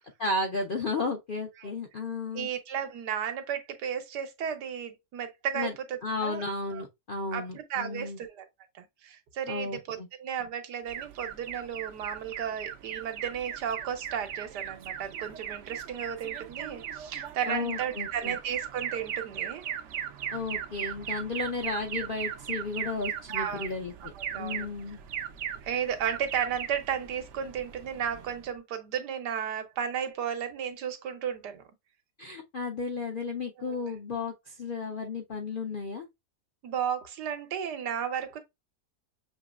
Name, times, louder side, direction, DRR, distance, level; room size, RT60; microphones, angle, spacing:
voice 1, 0.2-2.5 5.6-5.7 6.0-8.2 9.5-10.1 17.5-18.4 20.3-25.0 32.2-36.1, left 3 dB, 65° left, 0.5 m, -34 dB
voice 2, 2.3-6.4 6.7-6.8 7.3-8.5 8.7-19.6 23.3-23.7 24.1-24.7 25.6-31.6 33.6-33.9 36.6-38.4, right 8 dB, 90° right, 1.5 m, -34 dB
Alarm, 10.9-28.5, right 9 dB, 70° right, 0.6 m, -38 dB
6.6 x 3.0 x 2.3 m
omnidirectional pair, 1.8 m